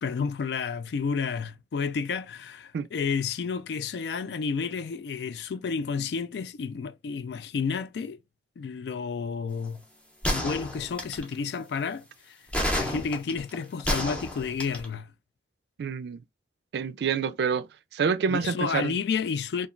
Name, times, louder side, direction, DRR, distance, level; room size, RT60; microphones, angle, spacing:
voice 1, 0.0-8.2 8.6-9.8 10.3-12.4 12.8-15.1 18.3-19.7, left 5 dB, 70° left, 0.3 m, -31 dB
sound 1, 10.2-11.3 12.5-14.9, equal, 5° left, 0.6 m, -29 dB
voice 2, 15.8-16.2 16.7-17.7 17.9-18.9, right 6 dB, 65° right, 0.3 m, -27 dB
2.9 x 2.3 x 2.4 m
head